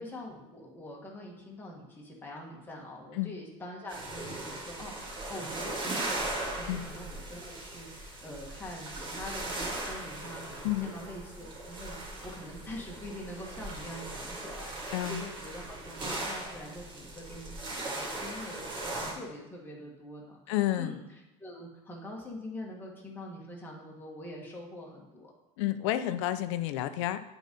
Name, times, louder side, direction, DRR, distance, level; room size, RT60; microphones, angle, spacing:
voice 1, 0.0-21.0 21.4-25.3, left 1 dB, 15° left, -2 dB, 1.7 m, -44 dB
sound 1, 3.9-19.1, right 2 dB, 30° right, 1.7 m, -38 dB
voice 2, 20.5-21.0 25.6-27.2, left 14 dB, 80° left, 12 dB, 0.5 m, -30 dB
8.4 x 4.0 x 5.3 m, 0.96 s
supercardioid pair, 135°, 15 cm